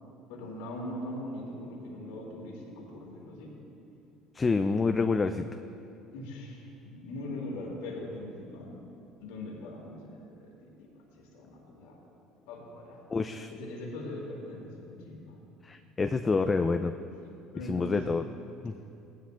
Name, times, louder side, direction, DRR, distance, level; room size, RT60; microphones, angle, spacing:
voice 1, 0.3-3.5 6.1-8.8 9.2-12.0 12.5-13.0 13.5-15.4 17.5-18.1, left 1 dB, 85° left, -2 dB, 2.3 m, -41 dB
voice 2, 4.3-5.5 13.1-13.5 15.6-16.9 17.7-18.2 18.6-18.7, left 4 dB, 25° left, 7 dB, 0.4 m, -27 dB
16.5 x 11.5 x 2.5 m, 2.7 s
supercardioid pair, 80°, 0 cm